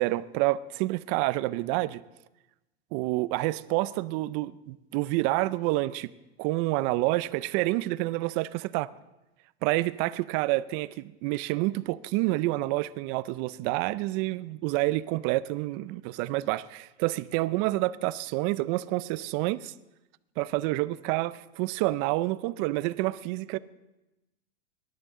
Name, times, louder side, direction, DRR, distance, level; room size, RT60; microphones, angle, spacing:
voice 1, 0.0-2.0 2.9-6.1 6.4-8.9 9.6-19.7 20.4-23.6, right 18 dB, 45° right, 0.5 m, -28 dB
18.5 x 11.5 x 3.7 m
supercardioid pair, 135°, 31 cm